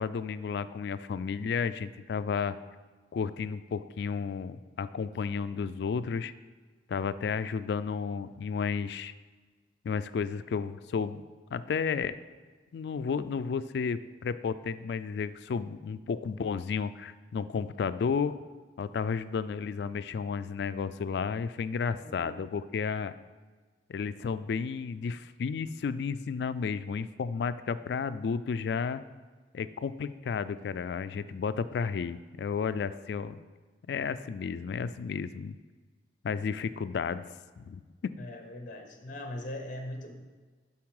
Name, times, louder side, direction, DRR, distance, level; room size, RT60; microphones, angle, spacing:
voice 1, 0.0-2.6 3.1-6.3 6.9-9.1 9.8-11.2 11.5-12.2 12.7-18.4 18.8-23.1 23.9-29.0 29.5-33.4 33.9-35.6 36.2-37.2 37.6-37.8, left 6 dB, 65° left, 14 dB, 0.3 m, -32 dB
voice 2, 22.0-22.4 38.2-40.1, left 1 dB, 45° left, 4 dB, 0.9 m, -40 dB
7.1 x 5.9 x 4.8 m, 1.4 s
head